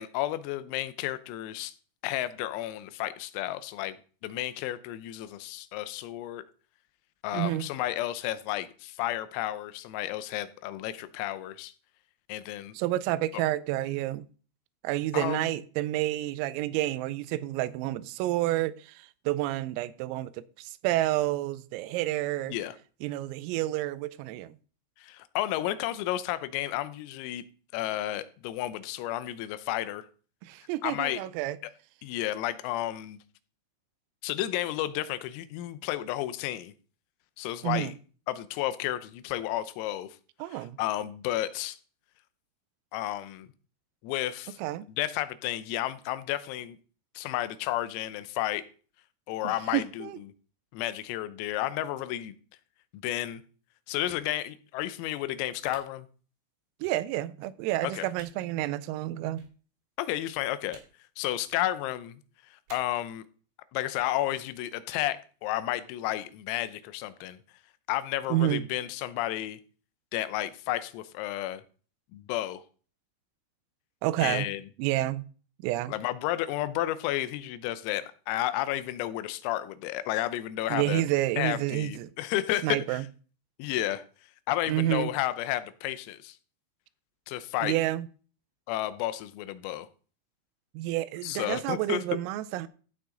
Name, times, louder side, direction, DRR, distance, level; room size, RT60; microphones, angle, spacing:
voice 1, 0.0-1.7 2.0-4.0 4.2-6.4 7.2-11.7 12.3-12.8 13.3-13.4 15.1-15.5 22.5-22.8 25.0-27.4 27.7-30.1 30.8-31.2 32.0-33.2 34.2-36.7 37.4-37.9 38.3-40.1 40.5-41.8 42.9-43.5 44.0-44.6 45.0-46.8 47.2-48.7 49.3-50.1 50.7-52.4 53.0-53.4 53.9-56.1 57.8-58.1 60.0-60.8 61.2-62.2 62.5-63.2 63.7-67.4 67.9-69.6 70.1-71.6 72.1-72.6 74.2-74.6 75.9-81.0 81.4-83.1 83.6-84.0 84.5-86.4 87.3-87.8 88.7-89.9 91.2-92.0, left 14 dB, 85° left, 3.5 m, -32 dB
voice 2, 7.3-7.7 12.7-14.3 14.8-22.6 23.0-24.5 30.4-31.6 37.6-37.9 40.4-40.8 44.6-44.9 49.4-50.2 56.8-59.5 68.3-68.7 74.0-74.5 74.8-75.2 75.6-75.9 80.7-82.1 82.6-83.0 84.7-85.1 87.6-88.1 90.7-92.7, right 15 dB, 85° right, 3.3 m, -29 dB
sound 1, 54.1-54.2 55.6-55.8 56.8-56.9 58.1-58.3 59.3-59.5 60.7-60.8 61.4-61.6 62.7-62.8, right 5 dB, 70° right, 4.7 m, -50 dB
15.0 x 6.2 x 3.8 m
omnidirectional pair, 6.0 m